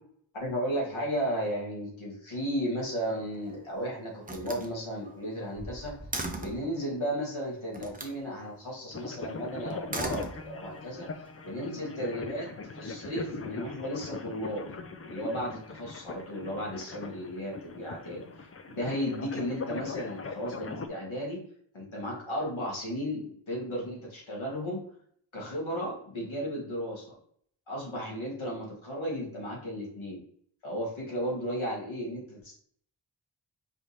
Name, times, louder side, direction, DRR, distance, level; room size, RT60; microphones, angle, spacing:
voice 1, 0.3-5.9 6.4-11.1 11.4-12.5 12.7-14.7 15.0-21.4 21.7-24.8 25.3-27.2 27.7-30.2 30.6-32.6, equal, 90° left, -3 dB, 1.7 m, -34 dB
Slam, 3.2-3.7 4.2-6.7 7.7-8.2 9.7-10.8, right 2 dB, 20° right, 0.6 m, -38 dB
sound 1, 8.9-20.9, left 4 dB, 35° left, 0.4 m, -41 dB
5.0 x 2.8 x 3.2 m, 0.63 s
wide cardioid pair, 70°, 46 cm